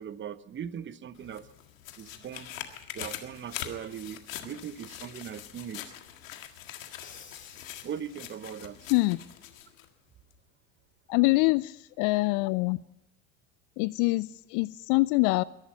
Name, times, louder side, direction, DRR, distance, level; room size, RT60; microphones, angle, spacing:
voice 1, 0.0-1.5 2.0-2.5 2.9-5.9 7.8-8.8 11.2-11.3, right 8 dB, 30° right, 16 dB, 1.0 m, -40 dB
sound 1, 1.1-9.9 10.3-10.4, left 11 dB, 80° left, 1.8 m, -43 dB
Crash cymbal, 7.0-8.7, left 6 dB, 30° left, 2.8 m, -54 dB
voice 2, 11.1-12.8 13.8-15.4, left 23 dB, 50° left, 20 dB, 0.5 m, -25 dB
22.0 x 11.0 x 5.5 m, 0.89 s
hypercardioid pair, 80°, 39 cm